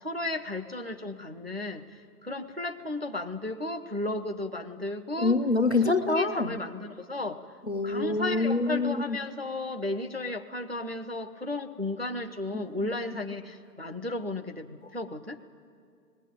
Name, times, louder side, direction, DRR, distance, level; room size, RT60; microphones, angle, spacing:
voice 1, 0.0-1.8 2.2-5.4 5.7-7.4 7.8-15.4, left 2 dB, 40° right, 6 dB, 0.4 m, -34 dB
voice 2, 5.2-6.6 7.7-9.2 12.5-13.0, left 3 dB, 45° left, 11 dB, 0.4 m, -26 dB
19.0 x 15.5 x 9.0 m, 2.3 s
hypercardioid pair, 170°, 50 cm